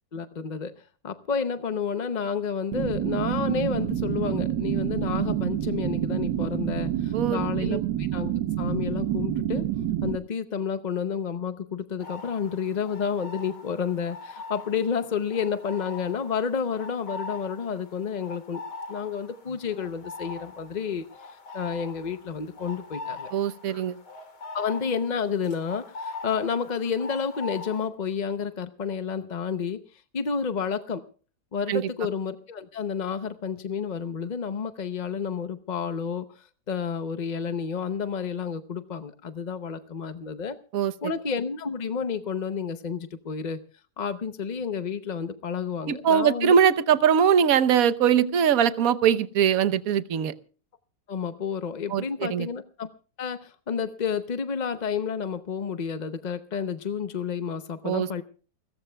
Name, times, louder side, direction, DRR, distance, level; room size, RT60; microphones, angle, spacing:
voice 1, 0.1-0.7 1.0-9.6 10.0-18.6 18.9-23.3 24.5-29.8 30.1-31.0 31.5-40.6 41.0-43.6 44.0-46.5 51.1-52.9 53.2-58.2, left 6 dB, 45° left, 10 dB, 0.5 m, -30 dB
sound 1, 2.7-10.2, right 12 dB, 90° right, 1.5 m, -28 dB
sound 2, 12.0-27.9, left 3 dB, 80° left, 2.8 m, -42 dB
voice 2, 23.3-23.9 31.7-31.9 40.7-40.9 45.9-50.3 51.9-52.5 57.8-58.2, right 8 dB, 60° right, 13 dB, 1.3 m, -22 dB
29.0 x 14.5 x 2.3 m, 0.38 s
omnidirectional pair, 1.8 m